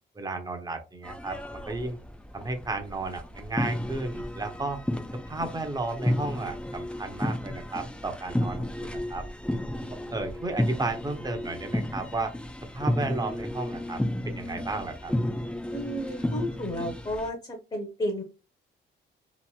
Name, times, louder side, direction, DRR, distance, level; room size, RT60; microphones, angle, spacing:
voice 1, 0.2-2.0 2.3-4.8 5.3-9.3 10.1-12.3 12.7-15.1, right 2 dB, 20° right, 5 dB, 0.8 m, -33 dB
sound 1, 1.0-17.3, left 1 dB, 5° left, 0.5 m, -33 dB
voice 2, 15.7-18.2, equal, 25° left, 4 dB, 0.9 m, -33 dB
3.0 x 2.5 x 2.3 m, 0.30 s
cardioid pair, 90°, 20 cm